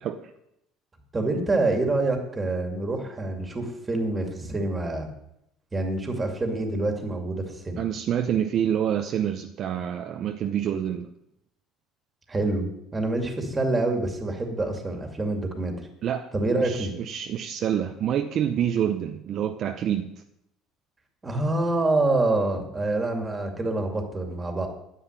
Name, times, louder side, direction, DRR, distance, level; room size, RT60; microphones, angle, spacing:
voice 1, 1.1-5.1 5.7-7.8 12.3-15.9 16.3-16.9 21.2-24.7, right 2 dB, 15° right, 4 dB, 2.5 m, -26 dB
voice 2, 7.8-11.1 16.0-16.3 16.6-20.1, right 9 dB, 40° right, 6 dB, 0.8 m, -27 dB
9.9 x 9.5 x 9.6 m, 0.81 s
cardioid pair, 150°, 0 cm